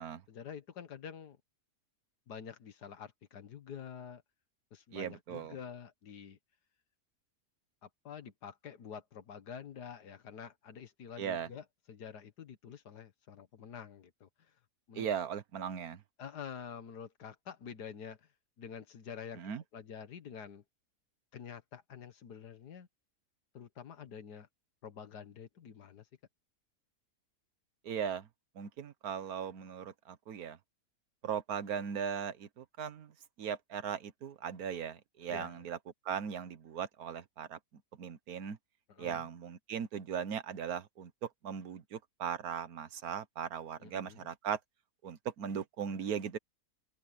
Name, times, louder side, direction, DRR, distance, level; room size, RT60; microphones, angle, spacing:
voice 1, 0.3-1.4 2.3-4.2 4.7-6.4 7.8-14.3 14.9-15.1 16.2-18.2 18.6-19.4 19.7-20.6 21.3-22.9 23.5-24.5 24.8-26.1 35.3-35.6 38.9-39.3 43.8-44.3, left 7 dB, 80° left, 2.0 m, -47 dB
voice 2, 4.9-5.6 11.2-11.5 14.9-16.0 19.4-19.6 27.8-28.3 28.5-30.6 31.2-33.1 33.4-35.8 36.0-37.6 38.0-38.6 39.0-44.6 45.0-46.4, right 8 dB, 65° right, 1.5 m, -38 dB
open air
omnidirectional pair, 1.7 m